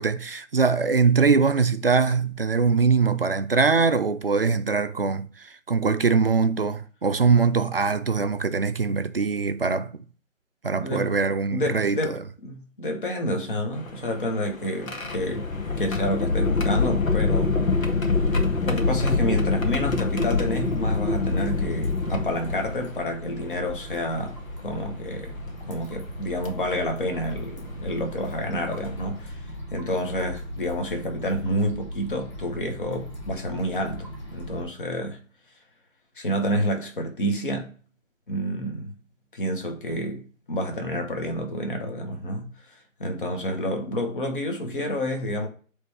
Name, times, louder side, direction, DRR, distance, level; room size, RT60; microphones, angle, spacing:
voice 1, 0.0-9.9 10.6-12.2, right 5 dB, 45° right, 0.5 m, -22 dB
voice 2, 10.7-11.1 11.5-15.5 15.8-17.5 18.6-24.4 24.6-25.4 25.7-35.2 36.2-37.7 38.3-39.0 39.3-42.5 43.0-45.5, equal, 40° left, 1.5 m, -29 dB
sound 1, 13.7-23.0 23.9-24.0 25.5-25.7 26.4-26.6 28.2-28.3 28.8-29.0, left 3 dB, 80° left, 1.6 m, -25 dB
sound 2, 20.1-34.6, left 1 dB, 20° left, 1.6 m, -38 dB
7.9 x 3.5 x 3.5 m
hypercardioid pair, 165°, 40 cm